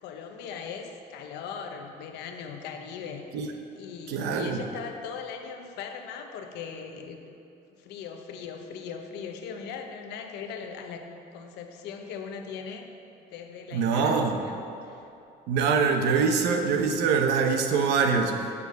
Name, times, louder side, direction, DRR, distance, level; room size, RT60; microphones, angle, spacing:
voice 1, 0.0-7.4 7.7-12.9 13.2-15.1, left 6 dB, 85° left, 4 dB, 0.9 m, -39 dB
voice 2, 4.1-4.6 13.7-14.4 15.5-18.4, right 5 dB, 90° right, 5 dB, 0.9 m, -24 dB
7.2 x 6.8 x 6.6 m, 2.8 s
cardioid pair, 110°, 17 cm